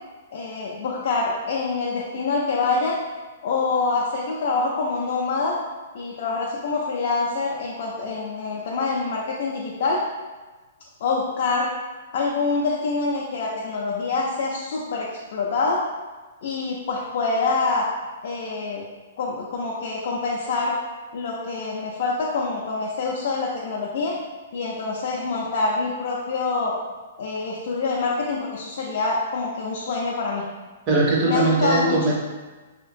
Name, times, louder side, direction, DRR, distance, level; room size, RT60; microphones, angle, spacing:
voice 1, 0.3-3.0 3.4-5.6 5.9-10.0 11.0-11.7 12.1-15.8 16.4-17.9 18.2-18.8 19.2-20.8 21.1-24.1 24.5-26.7 27.2-30.4 31.2-32.0, left 3 dB, 45° left, -4 dB, 0.4 m, -25 dB
voice 2, 30.9-32.1, right 2 dB, 25° right, -3 dB, 0.5 m, -20 dB
3.3 x 2.8 x 2.5 m, 1.3 s
hypercardioid pair, 175°, 0 cm